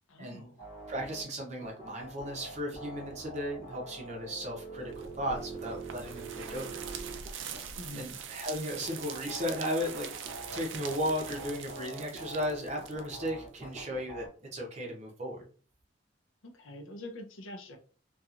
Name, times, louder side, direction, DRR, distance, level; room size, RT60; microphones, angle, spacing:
voice 1, 0.1-0.6 7.8-8.1 16.4-17.8, left 1 dB, 80° left, 5 dB, 0.5 m, -44 dB
sound 1, 0.6-1.2 1.6-7.6 8.8-14.3, right 3 dB, 35° left, 1.0 m, -44 dB
voice 2, 0.9-7.2 7.9-10.1 10.5-14.3 14.5-15.4, equal, 35° right, 0 dB, 0.7 m, -35 dB
sound 2, 4.9-13.8, right 7 dB, 70° right, 0.3 m, -43 dB
2.8 x 2.3 x 2.4 m, 0.42 s
head